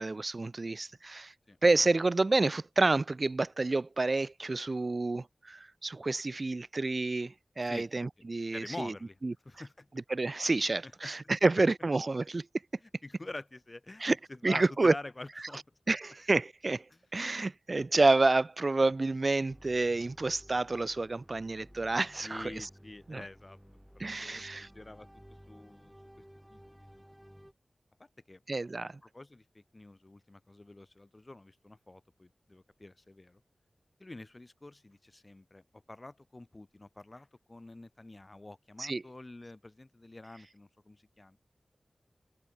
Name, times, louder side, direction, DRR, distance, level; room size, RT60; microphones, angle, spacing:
voice 1, 0.0-1.3 1.6-8.9 9.2-9.3 10.1-12.5 14.0-14.2 14.4-14.9 15.9-16.8 17.1-22.7 23.1-23.2 24.0-24.7 28.5-29.0 38.8-39.0, right 3 dB, 45° right, 0.5 m, -29 dB
voice 2, 8.5-9.2 9.5-9.9 11.0-11.1 13.0-16.0 16.9-17.0 22.2-23.6 24.2-25.1 25.5-25.9 26.5-27.0 28.0-28.4 29.1-33.4 34.0-41.4, left 2 dB, 30° left, 2.0 m, -47 dB
sound 1, 19.5-27.5, equal, 5° right, 5.8 m, -55 dB
wide cardioid pair, 85°, 0 cm